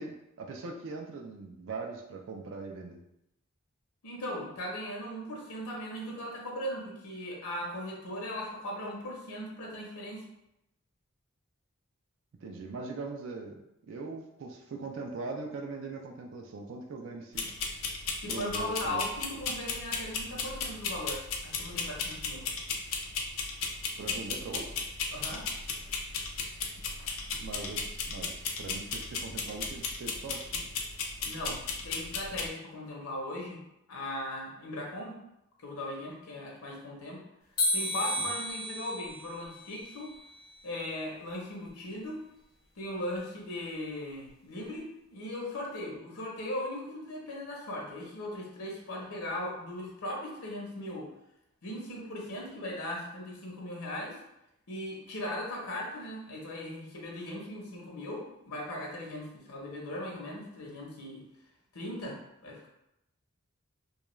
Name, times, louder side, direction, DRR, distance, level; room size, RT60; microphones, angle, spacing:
voice 1, 0.0-3.0 12.4-17.5 18.3-19.1 24.0-24.9 27.4-30.7 38.2-38.3, right 3 dB, 60° right, 2 dB, 0.3 m, -41 dB
voice 2, 4.0-10.3 18.2-22.5 25.1-25.5 31.2-33.6 33.9-35.2 35.6-37.2 37.7-40.1 40.6-42.3 42.8-51.1 51.6-54.2 54.7-61.2 61.7-62.7, left 1 dB, 85° left, -2 dB, 0.7 m, -38 dB
sound 1, 17.3-32.5, left 4 dB, 70° left, 0.4 m, -36 dB
sound 2, 37.6-40.7, left 1 dB, 45° left, 0.9 m, -33 dB
2.3 x 2.2 x 3.0 m, 0.83 s
head